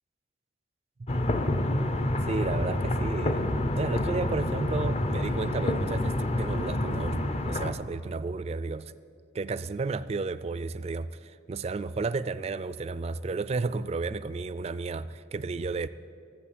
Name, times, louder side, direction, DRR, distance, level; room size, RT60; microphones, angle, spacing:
sound 1, 1.1-7.7, left 1 dB, 35° left, 0.6 m, -28 dB
voice 1, 2.3-3.5 3.8-8.9 9.3-15.9, right 3 dB, 35° right, 14 dB, 0.3 m, -32 dB
12.5 x 7.6 x 8.5 m, 2.3 s
head